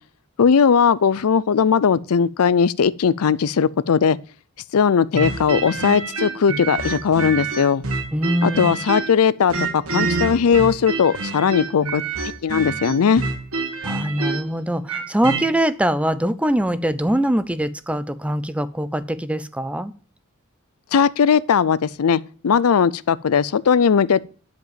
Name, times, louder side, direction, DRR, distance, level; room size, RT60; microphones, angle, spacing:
voice 1, 0.4-4.2 4.7-7.8 8.4-12.0 12.4-13.2 20.9-24.2, left 6 dB, 80° left, 0.5 m, -18 dB
sound 1, 5.1-9.2 9.5-15.5, right 3 dB, 70° right, 1.8 m, -27 dB
voice 2, 8.1-8.8 13.8-19.9, right 1 dB, 5° right, 0.5 m, -23 dB
10.5 x 5.3 x 7.4 m
head